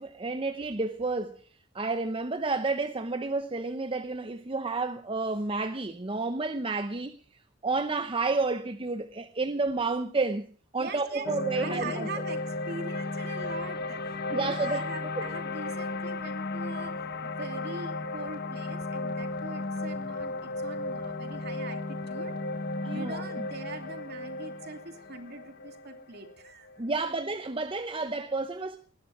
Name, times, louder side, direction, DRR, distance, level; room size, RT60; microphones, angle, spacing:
voice 1, 0.0-1.4 1.7-7.2 7.6-10.5 10.7-12.1 14.3-14.9 15.2-15.3 22.8-23.4 26.8-28.8, right 3 dB, 25° right, 0.8 m, -30 dB
voice 2, 10.7-22.4 22.8-26.7, right 3 dB, 55° right, 2.7 m, -42 dB
sound 1, 11.2-27.5, left 2 dB, 50° left, 1.0 m, -35 dB
19.5 x 12.5 x 4.9 m
head